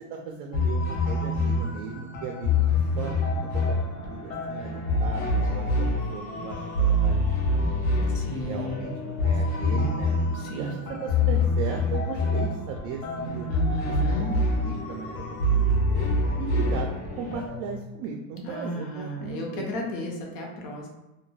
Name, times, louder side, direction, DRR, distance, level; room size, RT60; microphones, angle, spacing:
voice 1, 0.1-3.1 3.4-5.9 6.1-7.9 8.3-10.1 10.5-13.5 14.6-16.1 16.4-19.7, right 6 dB, 50° right, 1 dB, 0.4 m, -37 dB
sound 1, 0.5-17.8, left 1 dB, 80° left, 0.8 m, -26 dB
sound 2, 2.8-17.4, left 1 dB, 20° left, 0.6 m, -41 dB
voice 2, 8.0-8.9 9.6-9.9 10.3-10.8 13.5-14.3 18.4-20.9, equal, 55° left, 0 dB, 0.8 m, -34 dB
2.3 x 2.2 x 3.1 m, 1.0 s
supercardioid pair, 130°, 40 cm